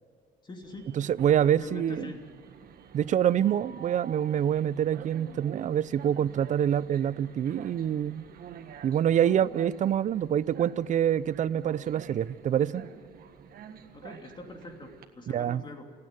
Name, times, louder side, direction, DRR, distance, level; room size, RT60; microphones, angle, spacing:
voice 1, 0.4-0.9 1.6-2.2 13.9-15.8, left 3 dB, 25° left, 3.0 m, -43 dB
Train, 0.6-15.0, right 8 dB, 60° right, 1.6 m, -48 dB
voice 2, 1.0-2.1 2.9-8.2 8.8-12.8 15.3-15.6, right 10 dB, 45° right, 0.6 m, -26 dB
29.0 x 9.8 x 9.2 m
cardioid pair, 110°, 17 cm